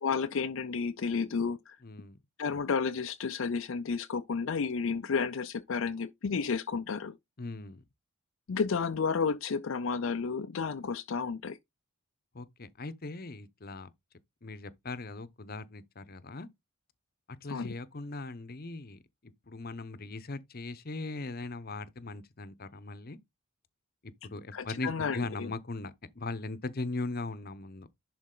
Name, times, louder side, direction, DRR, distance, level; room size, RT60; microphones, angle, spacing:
voice 1, 0.0-1.8 2.4-7.2 8.5-11.6 17.5-17.7 24.5-25.5, left 5 dB, 60° left, 0.4 m, -32 dB
voice 2, 1.8-2.2 7.4-7.8 12.3-13.9 14.4-16.5 17.4-23.2 24.0-27.9, left 3 dB, 40° left, 0.8 m, -39 dB
11.0 x 4.2 x 3.8 m
head